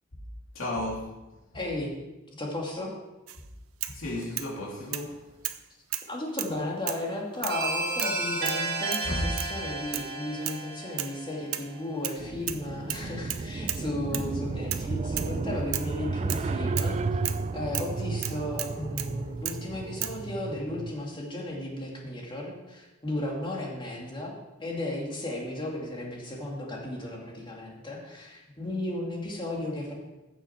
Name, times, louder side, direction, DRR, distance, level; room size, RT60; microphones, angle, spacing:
voice 1, 0.5-1.1 3.9-5.2 9.1-9.3 14.1-14.2, left 1 dB, 70° left, 2.9 m, -33 dB
voice 2, 1.5-1.9 2.4-2.9 6.1-17.2 17.5-24.3 24.6-29.9, left 1 dB, 25° left, 2.3 m, -34 dB
sound 1, 3.3-3.4 3.8-4.5 4.9-5.1 5.4-5.6 5.9-6.6 6.9-7.1 7.4-7.6 8.0-8.2 8.5-8.6 8.9-9.1 9.4-9.6 9.9-10.1 10.5-10.6 11.0-11.2 11.5-12.2 12.5-12.6 12.9-13.9 14.1-14.3 14.7-14.9 15.2-15.3 15.7-15.9 16.3-16.5 16.8-17.0 17.2-17.4 17.7-17.9 18.2-19.1 19.5-19.6 20.0-20.2, right 13 dB, 85° right, 0.7 m, -34 dB
sound 2, 7.5-12.2, right 2 dB, 50° right, 2.0 m, -33 dB
sound 3, 12.2-21.0, right 3 dB, 30° right, 0.4 m, -33 dB
15.0 x 6.8 x 4.5 m
head